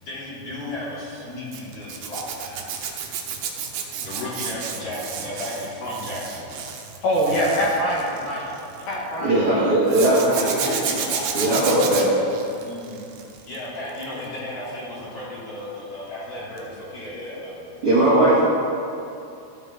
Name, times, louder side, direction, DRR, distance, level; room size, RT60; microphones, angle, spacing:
voice 1, 0.0-2.6 4.0-6.7 7.5-7.7 10.0-12.0 12.6-13.0 13.4-17.8 18.1-18.4, left 1 dB, 35° left, -10 dB, 3.7 m, -34 dB
Zipper (clothing), 1.5-8.9 9.9-13.6 13.9-14.3 16.6-16.7 17.0-17.1, right 7 dB, 75° right, 2.9 m, -31 dB
voice 2, 7.0-8.4 8.9-9.8, equal, 60° left, -6 dB, 3.3 m, -24 dB
voice 3, 9.2-10.8 11.3-12.1 17.8-18.4, right 1 dB, 45° right, -11 dB, 2.1 m, -19 dB
15.5 x 9.3 x 3.7 m, 2.7 s
omnidirectional pair, 5.1 m